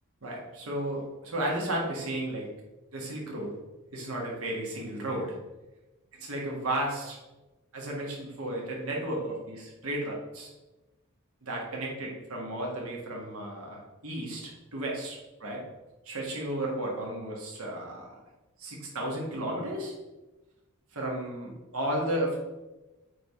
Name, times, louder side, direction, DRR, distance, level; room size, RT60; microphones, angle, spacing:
voice 1, 0.2-2.5 2.9-3.5 3.9-5.3 6.2-7.2 7.7-10.5 11.4-15.6 16.0-18.1 18.6-19.9 20.9-22.4, right 1 dB, 75° right, -2 dB, 1.5 m, -33 dB
8.6 x 3.4 x 3.6 m, 1.1 s
head